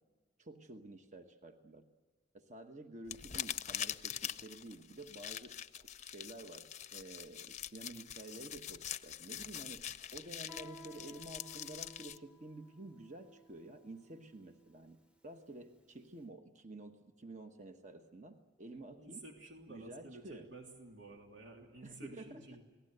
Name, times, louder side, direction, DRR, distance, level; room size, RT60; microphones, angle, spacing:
voice 1, 0.4-1.9 2.3-19.3 19.7-20.5 21.8-22.5, right 2 dB, 40° right, 6 dB, 1.2 m, -51 dB
sound 1, 3.1-12.2, left 10 dB, 40° left, 0.7 m, -44 dB
Guitar, 10.5-15.9, left 1 dB, 5° right, 0.9 m, -58 dB
voice 2, 19.0-22.6, right 2 dB, 90° right, 1 dB, 3.2 m, -52 dB
28.5 x 19.5 x 8.0 m, 1.4 s
head